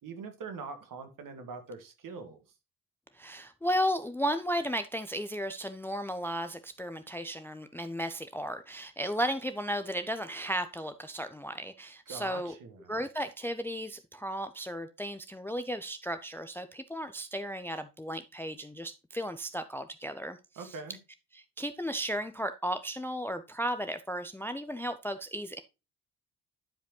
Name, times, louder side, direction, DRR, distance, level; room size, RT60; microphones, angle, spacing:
voice 1, 0.0-2.4 12.1-12.9 20.6-21.0, right 4 dB, 50° right, 7 dB, 1.8 m, -43 dB
voice 2, 3.1-12.6 12.9-20.8 21.3-25.6, equal, 5° left, 10 dB, 0.5 m, -34 dB
11.0 x 5.1 x 3.0 m, 0.27 s
figure-of-eight pair, 40°, 42 cm